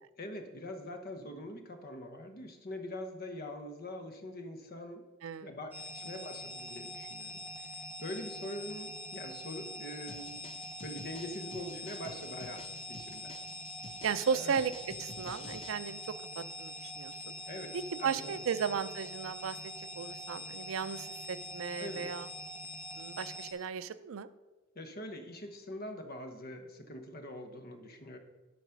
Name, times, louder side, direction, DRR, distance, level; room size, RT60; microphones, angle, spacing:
voice 1, 0.2-5.0 5.4-10.4 10.8-12.6 12.9-13.3 14.3-14.6 17.5-17.7 18.0-18.5 21.8-22.1 24.7-28.2, left 1 dB, 50° left, 5 dB, 1.1 m, -43 dB
voice 2, 5.2-5.5 14.0-14.7 15.0-16.0 16.4-17.1 18.0-19.6 20.0-22.3 23.0-24.3, right 6 dB, 80° right, 14 dB, 0.4 m, -35 dB
sound 1, 5.7-23.5, left 1 dB, 5° right, 1.1 m, -44 dB
sound 2, 10.1-15.8, left 4 dB, 30° left, 0.4 m, -51 dB
11.5 x 4.1 x 5.9 m, 1.2 s
head